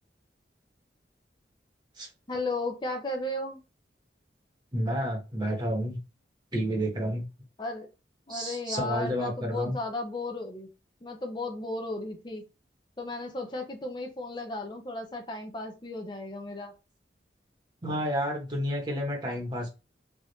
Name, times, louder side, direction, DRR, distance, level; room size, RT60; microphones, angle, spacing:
voice 1, 2.3-3.6 7.6-7.9 8.3-10.7 11.0-12.4 13.0-16.7, left 2 dB, 25° left, 3 dB, 0.6 m, -35 dB
voice 2, 4.7-6.0 6.5-7.3 8.3-9.8 17.8-19.7, equal, 25° right, 0 dB, 1.1 m, -30 dB
3.5 x 2.5 x 4.0 m, 0.28 s
head